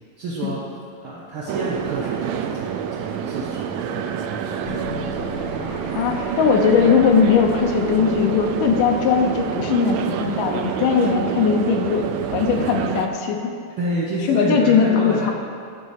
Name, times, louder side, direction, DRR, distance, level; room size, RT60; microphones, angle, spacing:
voice 1, 0.2-0.6 1.0-4.8 5.0-5.2 13.8-15.3, right 2 dB, 70° right, -6 dB, 1.3 m, -29 dB
sound 1, 1.5-13.1, right 9 dB, 90° right, 1.5 m, -28 dB
sound 2, 4.6-9.7, left 3 dB, 55° left, 1.6 m, -36 dB
voice 2, 5.9-13.5 14.3-15.3, left 6 dB, 85° left, 2 dB, 2.5 m, -19 dB
12.0 x 4.1 x 6.5 m, 2.3 s
omnidirectional pair, 3.7 m